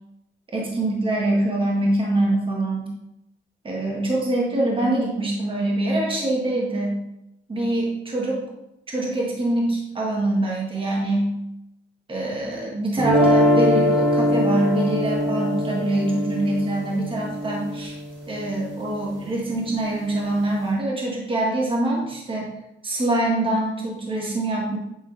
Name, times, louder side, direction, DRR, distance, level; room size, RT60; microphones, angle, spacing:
voice 1, 0.5-2.9 3.6-7.0 7.5-8.4 8.9-11.3 12.1-18.0 18.3-22.5 22.8-24.8, right 1 dB, 25° right, -2 dB, 1.6 m, -24 dB
sound 1, 13.0-19.1, equal, 60° right, 2.0 m, -22 dB
8.3 x 3.5 x 3.2 m, 0.88 s
cardioid pair, 90°, 20 cm